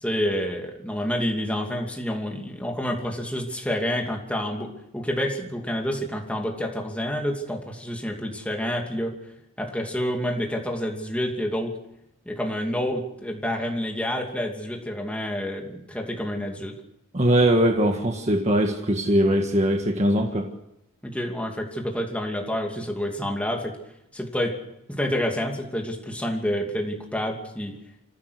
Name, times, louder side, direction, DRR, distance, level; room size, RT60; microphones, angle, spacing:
voice 1, 0.0-9.1 9.6-11.8 12.3-16.7 21.0-23.7 24.1-24.6 24.9-27.7, equal, 5° left, 1 dB, 2.7 m, -28 dB
voice 2, 17.1-20.5, right 1 dB, 30° right, 3 dB, 1.7 m, -21 dB
26.5 x 15.5 x 6.5 m, 0.84 s
head